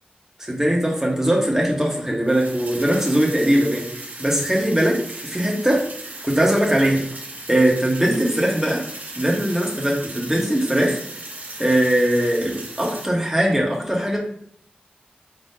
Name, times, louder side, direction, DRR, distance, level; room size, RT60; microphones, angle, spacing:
voice 1, 0.4-5.9 6.2-7.0 7.5-8.8 9.2-11.0 11.6-14.2, right 1 dB, 15° right, -1 dB, 1.4 m, -20 dB
sound 1, 2.2-13.0, right 2 dB, 60° right, 1.1 m, -37 dB
4.4 x 3.7 x 2.8 m, 0.65 s
cardioid pair, 45°, 3 cm